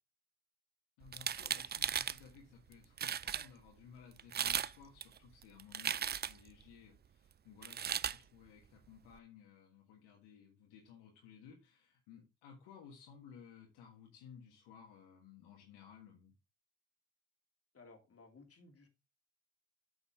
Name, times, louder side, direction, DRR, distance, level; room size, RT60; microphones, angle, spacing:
voice 1, 1.0-16.3, left 7 dB, 80° left, 1 dB, 1.6 m, -58 dB
sound 1, 1.1-2.2 2.7-2.8 3.0-3.5 4.2-4.7 5.0-6.5 7.6-8.2, right 8 dB, 25° right, 0.4 m, -36 dB
voice 2, 17.7-18.9, left 3 dB, 35° left, 3 dB, 2.9 m, -59 dB
8.4 x 6.8 x 3.6 m, 0.27 s
hypercardioid pair, 55°, 41 cm